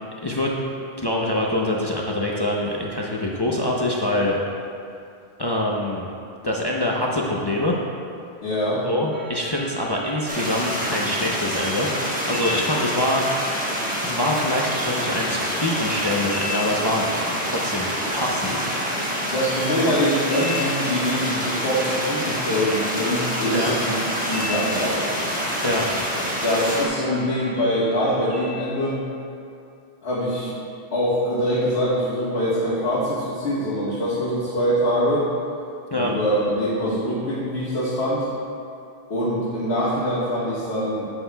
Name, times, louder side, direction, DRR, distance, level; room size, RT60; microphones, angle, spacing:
voice 1, 0.2-0.5 1.0-4.4 5.4-6.1 6.4-7.8 8.8-11.9 12.3-13.3 14.0-17.1 17.4-18.7 19.8-20.0 23.5-23.7 25.6-25.9 35.9-36.2, left 1 dB, 30° left, -3 dB, 0.5 m, -24 dB
voice 2, 8.4-8.8 19.3-25.1 26.4-29.0 30.0-30.5 30.9-35.2 35.9-38.2 39.1-41.1, equal, 75° left, -10 dB, 1.7 m, -24 dB
sound 1, 9.1-29.0, left 1 dB, 45° right, 1.4 m, -38 dB
sound 2, 10.3-26.9, equal, 10° right, 1.0 m, -27 dB
9.9 x 7.8 x 2.2 m, 2.5 s
omnidirectional pair, 1.1 m